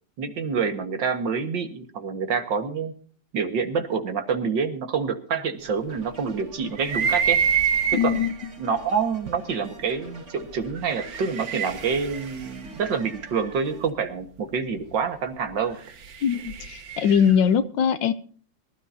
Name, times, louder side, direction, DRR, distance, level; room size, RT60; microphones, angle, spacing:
voice 1, 0.2-2.9 3.3-7.4 8.0-8.2 8.6-15.8, right 5 dB, 80° right, 7 dB, 2.2 m, -27 dB
sound 1, 5.9-13.9, right 2 dB, 40° right, 2.6 m, -46 dB
sound 2, 6.8-8.4 9.3-9.4 10.7-13.6 15.6-17.4, right 7 dB, 55° right, 1.5 m, -27 dB
voice 2, 7.9-8.3 16.2-18.1, left 8 dB, 80° left, 11 dB, 1.5 m, -21 dB
23.5 x 12.5 x 2.7 m, 0.43 s
omnidirectional pair, 2.0 m